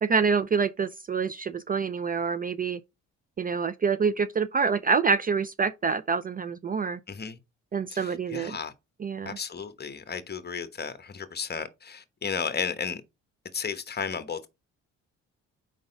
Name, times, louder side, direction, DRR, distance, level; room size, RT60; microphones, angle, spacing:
voice 1, 0.0-2.8 3.4-7.0 7.7-8.6 9.0-9.4, right 5 dB, 30° right, 0.4 m, -26 dB
voice 2, 7.1-7.4 7.9-8.7 9.2-13.0 13.5-14.5, left 6 dB, 35° left, 1.1 m, -34 dB
4.8 x 3.9 x 5.1 m
cardioid pair, 90°, 30 cm